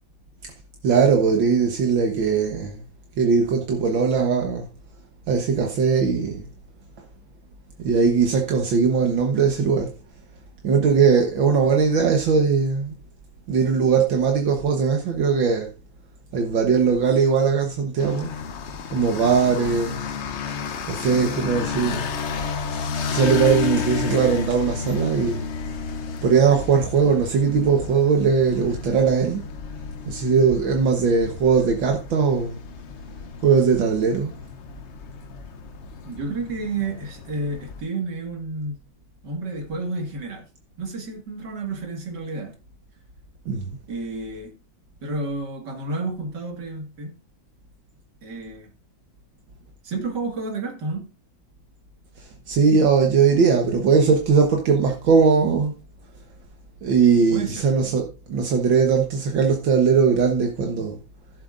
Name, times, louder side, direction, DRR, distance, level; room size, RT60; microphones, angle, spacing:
voice 1, 0.8-2.8 3.2-4.7 5.3-6.5 7.8-9.9 10.6-12.9 13.5-15.7 16.3-18.3 18.9-20.1 20.8-22.1 23.1-25.5 26.2-29.4 30.1-32.6 33.4-34.3 43.5-43.8 52.5-55.7 56.8-61.0, right 5 dB, 80° right, 2.0 m, -20 dB
sound 1, 18.0-37.8, left 6 dB, 55° left, 0.8 m, -32 dB
voice 2, 36.1-38.8 39.2-40.5 40.8-42.6 43.9-44.5 45.0-47.1 48.2-48.7 49.8-51.1 57.3-57.6, right 3 dB, 60° right, 2.7 m, -30 dB
15.5 x 7.7 x 2.6 m
omnidirectional pair, 2.1 m